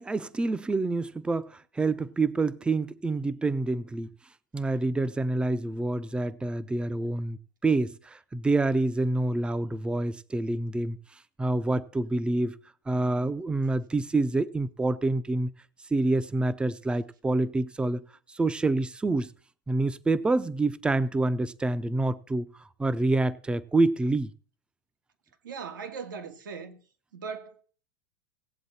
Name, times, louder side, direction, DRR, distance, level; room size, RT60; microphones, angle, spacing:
voice 1, 0.0-4.1 4.5-11.0 11.4-12.5 12.9-15.5 15.9-18.0 18.3-19.3 19.7-24.3, right 2 dB, 10° right, 0.6 m, -27 dB
voice 2, 25.4-26.8 27.1-27.6, right 5 dB, 90° right, 1.7 m, -39 dB
17.5 x 7.7 x 4.2 m
hypercardioid pair, 115°, 10 cm